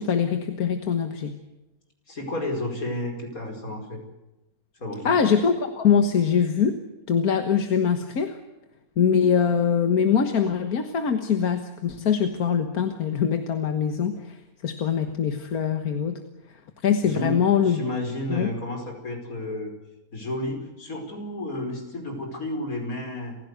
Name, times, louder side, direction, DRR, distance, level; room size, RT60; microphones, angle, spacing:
voice 1, 0.0-1.4 5.1-6.8 7.1-8.4 9.0-16.2 16.8-17.8 18.3-18.5, left 7 dB, 90° left, 7 dB, 1.9 m, -23 dB
voice 2, 2.1-4.0 4.8-5.1 17.0-19.7 20.1-23.4, left 1 dB, 75° left, 3 dB, 5.5 m, -32 dB
30.0 x 16.0 x 8.2 m, 1.0 s
omnidirectional pair, 1.5 m